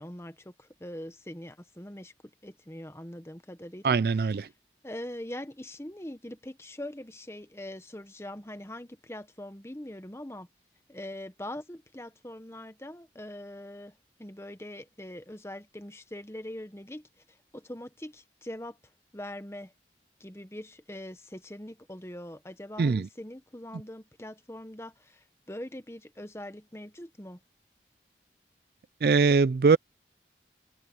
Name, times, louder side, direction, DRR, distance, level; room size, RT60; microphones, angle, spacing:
voice 1, 0.0-4.4 4.8-10.5 10.9-18.8 19.1-19.7 20.2-27.4, left 1 dB, 15° left, 1.1 m, -42 dB
voice 2, 3.8-4.5 22.8-23.1 29.0-29.8, right 4 dB, 60° right, 0.4 m, -22 dB
head